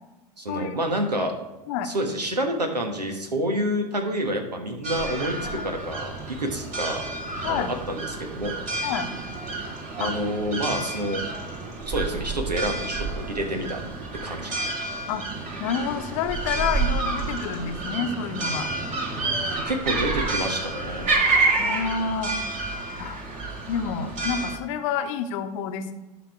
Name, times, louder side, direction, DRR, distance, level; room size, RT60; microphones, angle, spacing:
voice 1, 0.4-1.3 1.8-6.1 6.4-7.0 7.5-8.5 8.8-8.9 10.0-11.2 11.8-13.8 14.2-14.7 19.7-21.2, right 1 dB, 80° right, 4 dB, 1.4 m, -28 dB
sound 1, 4.8-24.6, right 3 dB, 35° right, 2.6 m, -29 dB
voice 2, 15.6-18.7 21.6-22.3 23.0-23.2 23.7-25.9, left 7 dB, 50° left, 8 dB, 0.9 m, -28 dB
11.5 x 5.1 x 4.8 m, 1.1 s
figure-of-eight pair, 85°, 21 cm